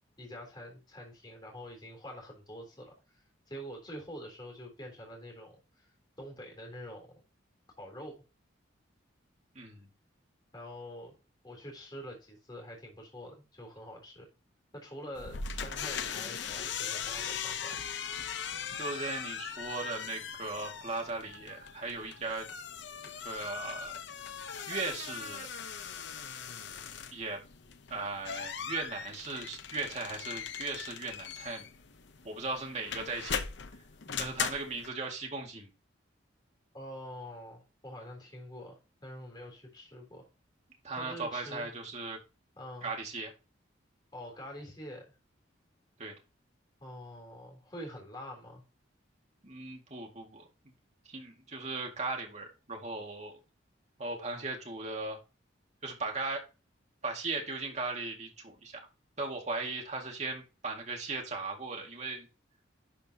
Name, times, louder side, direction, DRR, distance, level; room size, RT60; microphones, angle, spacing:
voice 1, 0.0-5.9 6.2-7.2 7.8-8.2 10.5-11.1 11.4-14.3 14.7-17.8 34.0-34.3 36.7-40.3 40.9-41.7 42.6-42.9 44.1-45.1 46.8-48.6, equal, 20° left, 1 dB, 3.5 m, -46 dB
voice 2, 9.5-9.9 18.8-22.5 23.2-24.0 24.7-25.5 27.1-27.4 27.9-31.7 32.2-33.5 34.2-35.7 40.8-42.2 42.8-43.3 46.0-46.1 49.4-50.5 51.0-53.4 54.0-55.2 55.8-56.4 57.0-58.9 59.2-62.3, right 3 dB, 35° right, 1 dB, 2.1 m, -37 dB
sound 1, 15.2-34.9, left 7 dB, 60° left, 0.8 m, -40 dB
11.5 x 5.2 x 2.9 m, 0.30 s
head